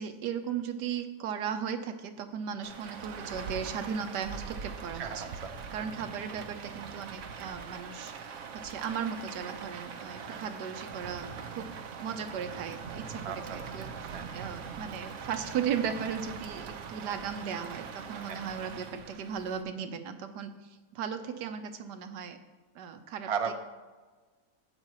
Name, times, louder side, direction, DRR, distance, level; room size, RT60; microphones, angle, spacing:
voice 1, 0.0-5.2 5.7-11.7 12.0-20.5 20.9-22.4 22.7-23.5, right 7 dB, 85° right, 8 dB, 1.4 m, -36 dB
Rain, 2.6-19.6, right 6 dB, 60° right, 0.9 m, -42 dB
voice 2, 4.9-5.7 10.2-10.4 13.2-13.6 14.1-14.3 17.0-17.2 18.3-18.4 23.3-23.5, right 6 dB, 40° right, 5 dB, 0.5 m, -36 dB
12.0 x 8.9 x 3.0 m, 1.3 s
omnidirectional pair, 1.7 m